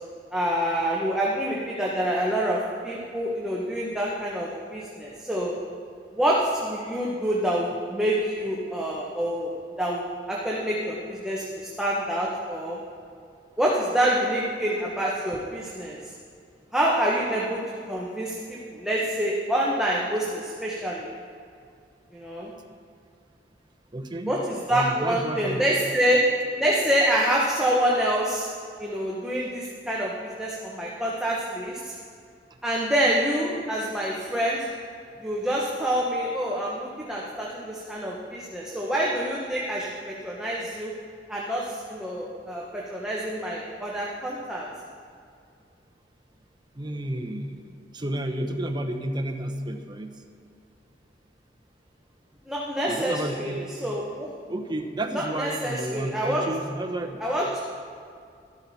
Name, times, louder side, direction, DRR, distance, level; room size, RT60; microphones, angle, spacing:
voice 1, 0.3-5.5 6.1-9.5 9.8-11.4 11.8-12.8 13.6-16.0 16.7-21.1 22.1-22.5 24.3-26.2 26.6-28.5 28.8-31.9 32.6-34.7 35.2-40.9 41.3-44.7 52.5-53.5 53.8-54.3 55.1-56.4 57.2-57.6, equal, 5° right, -5 dB, 1.2 m, -26 dB
voice 2, 23.9-24.4 24.7-25.6 46.8-47.7 47.9-50.1 52.9-53.6 54.5-57.2, right 1 dB, 25° right, 5 dB, 0.9 m, -31 dB
13.0 x 12.5 x 4.3 m, 2.3 s
head